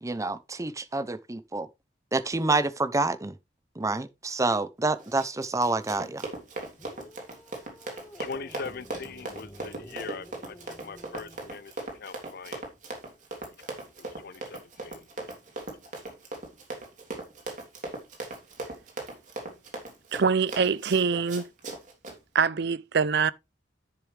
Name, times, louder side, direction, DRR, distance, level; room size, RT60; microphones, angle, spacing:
voice 1, 0.0-1.7 2.1-3.4 3.8-6.3, right 3 dB, 15° right, 0.6 m, -28 dB
Run, 5.0-22.2, right 2 dB, 45° right, 3.2 m, -39 dB
sound 1, 6.8-11.6, equal, 15° left, 1.5 m, -50 dB
voice 2, 8.1-10.6 10.8-12.7 14.0-15.1, left 5 dB, 55° left, 0.7 m, -41 dB
voice 3, 20.1-21.5 22.3-23.3, right 5 dB, 65° right, 0.5 m, -24 dB
10.5 x 6.8 x 3.3 m
head